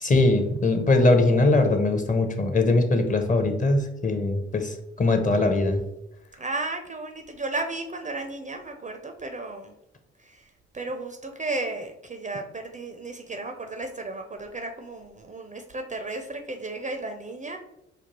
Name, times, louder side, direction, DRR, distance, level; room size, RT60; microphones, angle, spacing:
voice 1, 0.0-5.8, left 2 dB, 25° left, 6 dB, 0.6 m, -21 dB
voice 2, 6.4-9.8 10.2-17.6, right 2 dB, 20° right, 5 dB, 0.4 m, -34 dB
5.2 x 2.3 x 2.9 m, 0.87 s
figure-of-eight pair, 40°, 35 cm